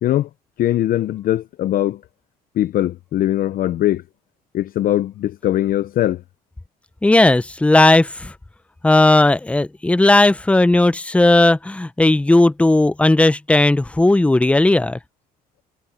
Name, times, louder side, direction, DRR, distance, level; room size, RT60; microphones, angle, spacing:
voice 1, 0.6-2.0 2.6-4.0 4.5-6.2, left 13 dB, 55° left, 0.6 m, -20 dB
voice 2, 7.0-8.3 8.8-15.0, left 2 dB, 5° left, 0.6 m, -15 dB
cardioid pair, 110°, 17 cm